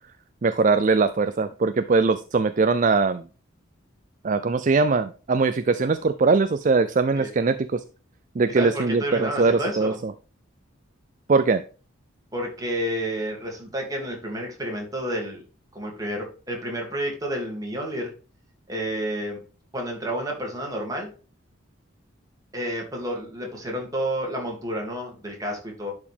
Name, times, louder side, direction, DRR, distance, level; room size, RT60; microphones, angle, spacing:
voice 1, 0.4-3.2 4.2-7.8 8.4-10.1 11.3-11.6, right 4 dB, 40° right, 11 dB, 0.4 m, -21 dB
voice 2, 8.5-10.0 12.3-15.4 15.7-18.1 18.7-19.4 19.7-21.1 22.5-25.9, equal, 15° right, 0 dB, 2.5 m, -30 dB
11.0 x 4.9 x 3.5 m, 0.37 s
head